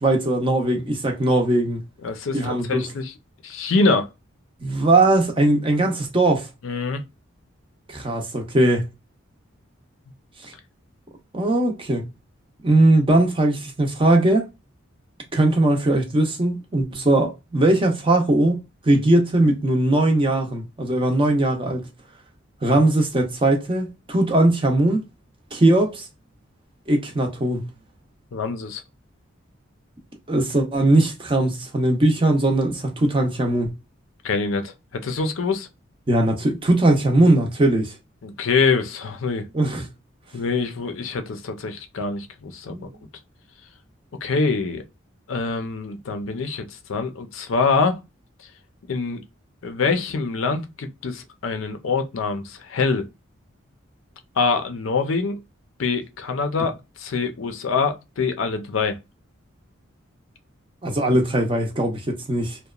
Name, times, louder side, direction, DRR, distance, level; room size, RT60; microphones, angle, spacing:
voice 1, 0.0-1.8 2.3-2.8 4.6-6.5 7.9-8.9 11.3-12.0 12.6-14.5 15.3-21.9 22.6-25.0 25.5-26.0 26.9-27.7 30.3-33.7 36.1-37.9 39.5-39.9 42.7-42.9 60.8-62.6, right 1 dB, 25° right, 0.5 m, -20 dB
voice 2, 2.0-3.1 3.4-4.1 6.6-7.0 28.3-28.8 34.2-35.7 38.2-39.5 40.3-42.8 44.2-44.8 45.3-48.0 48.9-49.2 49.6-53.1 54.4-55.4 55.8-59.0, left 4 dB, 75° left, 0.5 m, -24 dB
2.8 x 2.1 x 2.3 m
head